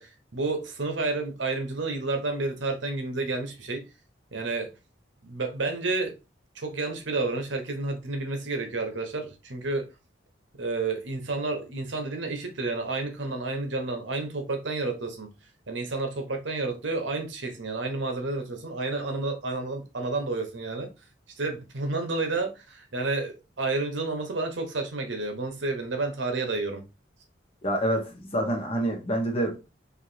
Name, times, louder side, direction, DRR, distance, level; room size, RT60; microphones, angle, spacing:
voice 1, 0.0-3.8 4.3-4.7 5.2-6.2 6.5-9.9 10.6-15.3 15.7-20.9 21.4-26.8, right 3 dB, 75° right, 0.9 m, -30 dB
voice 2, 27.6-29.7, right 1 dB, 30° left, 1.0 m, -27 dB
4.7 x 2.7 x 2.6 m
head